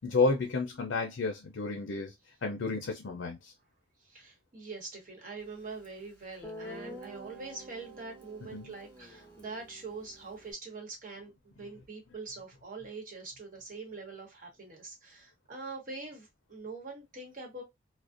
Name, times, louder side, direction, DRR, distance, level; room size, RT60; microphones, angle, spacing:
voice 1, 0.0-2.1 2.4-3.4 8.5-8.7, left 3 dB, 75° left, 0.5 m, -30 dB
voice 2, 4.0-17.6, right 3 dB, 45° right, 0.9 m, -44 dB
Guitar, 5.8-5.9 6.4-10.5, equal, 10° left, 0.7 m, -48 dB
2.5 x 2.0 x 2.5 m
head